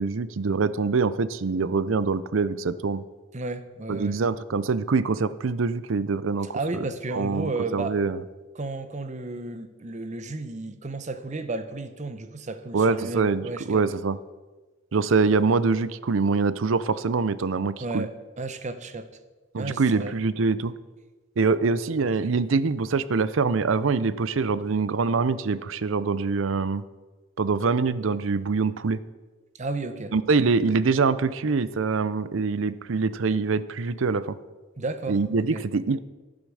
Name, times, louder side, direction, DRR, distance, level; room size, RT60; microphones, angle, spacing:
voice 1, 0.0-3.0 3.9-6.5 7.1-8.2 12.7-14.2 14.9-18.1 19.5-20.7 21.4-26.8 27.4-29.0 30.1-34.4 35.1-36.0, right 4 dB, 70° right, 15 dB, 0.6 m, -24 dB
voice 2, 3.3-4.2 6.5-8.0 8.5-13.8 17.8-19.1 19.6-20.2 29.5-30.1 34.8-35.2 35.5-35.7, right 3 dB, 35° right, 11 dB, 0.8 m, -33 dB
11.5 x 8.8 x 6.3 m, 1.3 s
head